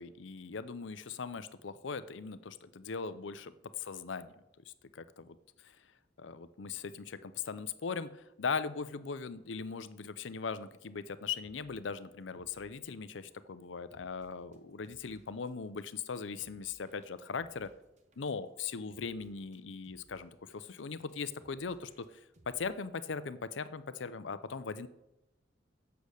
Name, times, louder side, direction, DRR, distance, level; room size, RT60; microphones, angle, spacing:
voice 1, 0.0-4.3 4.7-5.4 6.2-17.7 18.2-22.1 22.5-24.9, left 5 dB, 75° left, 13 dB, 0.6 m, -39 dB
sound 1, 11.0-11.1 11.3-11.8 12.2-22.8, right 1 dB, 40° right, 1.1 m, -66 dB
8.3 x 6.9 x 6.4 m, 0.90 s
head